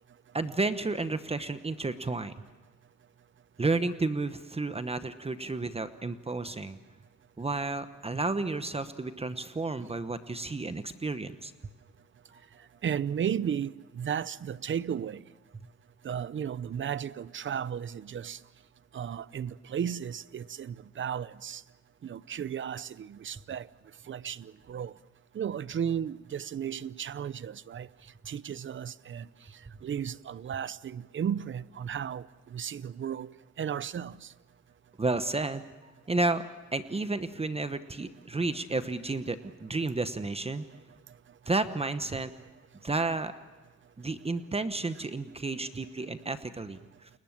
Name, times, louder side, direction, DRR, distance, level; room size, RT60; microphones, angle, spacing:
voice 1, 0.3-2.3 3.6-6.8 7.4-11.5 12.3-12.4 35.0-36.4 36.7-40.6 41.5-42.3 42.8-43.3 44.0-47.1, right 3 dB, 20° right, 1.1 m, -32 dB
voice 2, 12.8-15.2 16.0-18.4 18.9-21.6 22.0-23.7 24.1-24.9 25.3-27.9 28.3-29.3 29.8-33.3 33.6-34.3, right 8 dB, 40° right, 0.7 m, -34 dB
29.5 x 21.5 x 7.4 m
cardioid pair, 90°, 30 cm